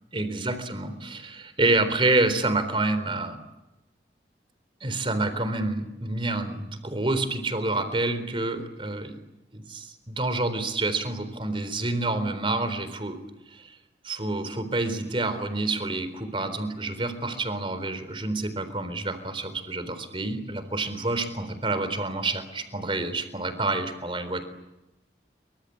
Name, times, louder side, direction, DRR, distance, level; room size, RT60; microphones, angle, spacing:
voice 1, 0.1-3.4 4.8-9.2 9.5-13.2 13.5-13.8 14.0-24.4, right 2 dB, 30° right, 11 dB, 3.9 m, -28 dB
27.5 x 25.0 x 8.7 m, 0.96 s
head